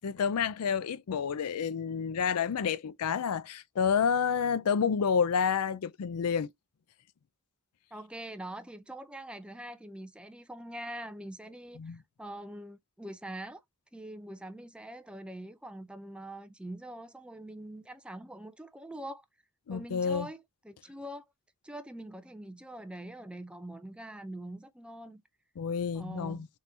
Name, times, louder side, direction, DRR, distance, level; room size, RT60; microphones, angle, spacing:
voice 1, 0.0-6.5 11.8-12.0 19.7-20.3 25.6-26.5, left 6 dB, 85° left, 0.4 m, -29 dB
voice 2, 7.9-13.6 13.9-19.3 19.7-21.2 21.6-25.2 25.9-26.5, right 1 dB, 5° right, 0.3 m, -43 dB
4.4 x 3.7 x 2.6 m
head